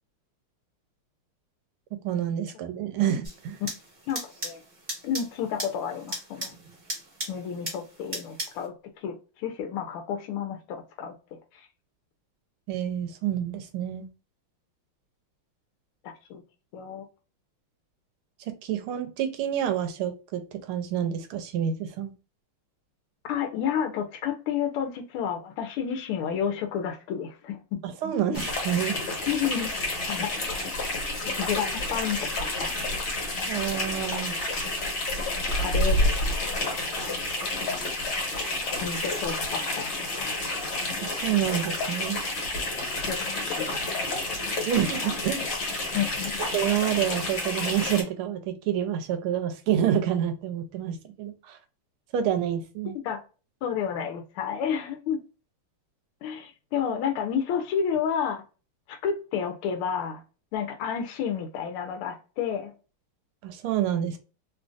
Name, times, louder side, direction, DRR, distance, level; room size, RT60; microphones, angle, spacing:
voice 1, 2.0-3.6 12.7-14.1 18.6-22.1 27.8-28.9 33.5-34.4 41.0-42.2 44.6-45.5 46.5-51.6 52.1-52.9 63.4-64.2, right 10 dB, 85° right, 7 dB, 1.5 m, -28 dB
sound 1, 3.2-8.7, right 1 dB, 25° right, 1.1 m, -38 dB
voice 2, 4.1-4.6 5.0-6.5 7.3-11.1 11.5-11.7 16.0-16.4 16.7-17.0 23.3-27.8 28.3-28.5 29.3-29.8 30.1-30.3 31.4-32.7 35.5-36.5 38.8-40.3 43.1-43.2 43.5-44.2 45.9-46.5 53.0-53.2 53.6-55.2 56.2-58.4 58.9-60.2 60.5-62.7, left 8 dB, 90° left, 6 dB, 1.5 m, -31 dB
sound 2, 28.3-48.0, left 2 dB, 60° left, 1.8 m, -29 dB
3.7 x 2.5 x 2.3 m, 0.33 s
omnidirectional pair, 2.4 m